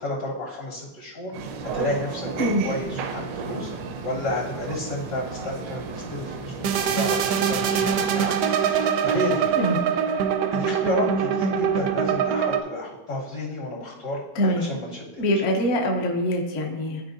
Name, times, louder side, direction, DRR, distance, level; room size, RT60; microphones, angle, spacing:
voice 1, 0.0-1.3 1.7-3.7 4.0-8.3 8.7-9.5 10.5-14.2 14.6-15.0, left 1 dB, 65° left, -7 dB, 3.0 m, -31 dB
Bowed string instrument, 1.2-8.8, left 2 dB, 10° right, 0.5 m, -45 dB
sound 1, 1.3-8.4, right 5 dB, 85° right, 1.3 m, -34 dB
sound 2, 6.6-12.6, right 7 dB, 70° right, 0.9 m, -23 dB
voice 2, 15.2-17.0, equal, 50° left, 1 dB, 1.1 m, -23 dB
12.5 x 4.7 x 2.6 m, 1.0 s
omnidirectional pair, 1.9 m